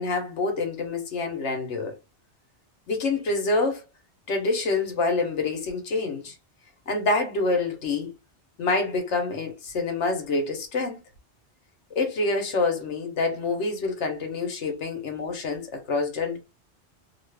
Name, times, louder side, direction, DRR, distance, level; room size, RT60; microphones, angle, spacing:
voice 1, 0.0-1.9 2.9-3.8 4.3-6.3 6.9-8.1 8.6-11.0 11.9-16.4, left 3 dB, 85° left, 1.3 m, -27 dB
2.8 x 2.5 x 3.2 m
omnidirectional pair, 1.2 m